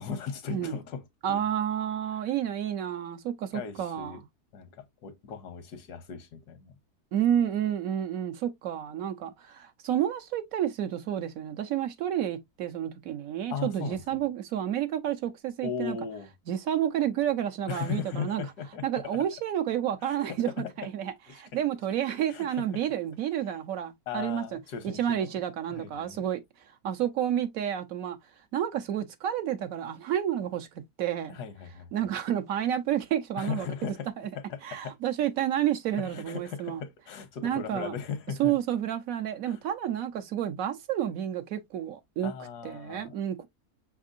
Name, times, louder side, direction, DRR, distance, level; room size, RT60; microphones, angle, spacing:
voice 1, 0.0-1.5 2.1-2.3 3.5-4.2 4.5-6.8 13.5-14.3 15.6-16.3 17.7-18.8 20.0-20.4 21.3-21.4 22.3-22.6 24.1-25.4 25.7-26.2 31.3-31.9 33.4-34.1 34.3-35.0 36.0-38.6 39.5-39.6 42.2-43.1, left 6 dB, 80° left, 1.4 m, -37 dB
voice 2, 1.2-4.2 7.1-16.0 16.5-18.4 18.8-20.5 20.8-24.4 25.0-26.4 26.8-28.2 28.5-30.7 31.0-31.4 31.9-34.3 34.6-36.8 37.4-37.9 38.4-42.3 42.6-43.5, right 10 dB, 70° right, 0.9 m, -30 dB
5.7 x 3.6 x 2.4 m
omnidirectional pair, 1.7 m